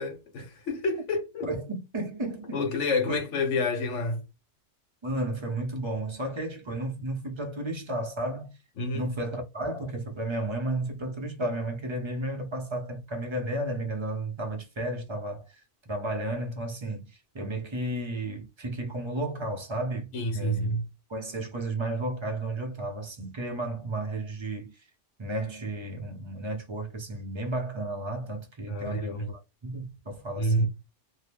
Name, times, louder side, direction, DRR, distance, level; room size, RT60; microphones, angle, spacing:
voice 1, 0.0-1.5 2.5-4.2 8.8-9.0 20.1-20.8 28.6-29.3 30.4-30.7, left 1 dB, 75° left, 1.3 m, -28 dB
voice 2, 1.4-2.6 3.1-3.2 5.0-8.6 8.9-15.6 15.9-20.7 21.1-24.9 25.2-30.7, right 1 dB, 30° right, 0.6 m, -33 dB
2.7 x 2.2 x 3.3 m
omnidirectional pair, 1.3 m